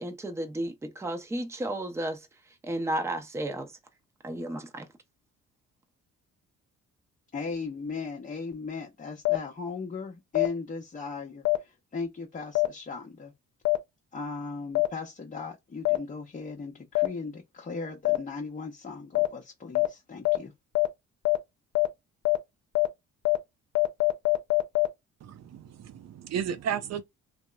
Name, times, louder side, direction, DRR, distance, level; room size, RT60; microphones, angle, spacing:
voice 1, 0.0-2.3 2.6-3.7 4.2-4.9, right 1 dB, 10° right, 0.6 m, -33 dB
voice 2, 7.3-13.3 14.1-20.5, left 4 dB, 25° left, 0.7 m, -37 dB
sound 1, 9.2-9.4 10.3-10.5 11.4-11.6 12.5-12.7 13.6-13.8 14.7-14.9 15.8-16.0 16.9-17.1 18.0-18.2 19.1-19.3 19.7-19.9 20.2-20.4 20.7-20.9 21.2-21.4 21.7-21.9 22.2-22.4 22.7-22.9 23.2-23.4 23.7-24.9, left 21 dB, 65° left, 0.6 m, -22 dB
voice 3, 25.2-27.0, right 8 dB, 60° right, 0.6 m, -33 dB
2.8 x 2.0 x 2.2 m
cardioid pair, 90°, 30 cm